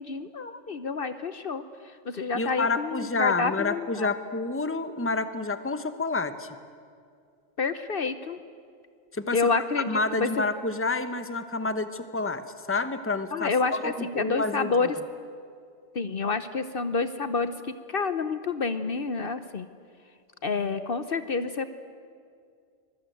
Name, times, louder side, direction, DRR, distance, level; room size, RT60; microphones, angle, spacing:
voice 1, 0.0-1.6 2.1-4.1 7.6-8.4 9.3-9.9 10.2-10.4 13.3-15.0 15.9-17.5 17.9-19.7 20.4-21.7, left 4 dB, 55° left, 11 dB, 1.0 m, -28 dB
voice 2, 2.3-6.5 9.1-9.5 9.9-12.4 12.7-14.9, left 3 dB, 10° left, 10 dB, 1.0 m, -29 dB
25.0 x 21.0 x 9.2 m, 2.3 s
omnidirectional pair, 1.2 m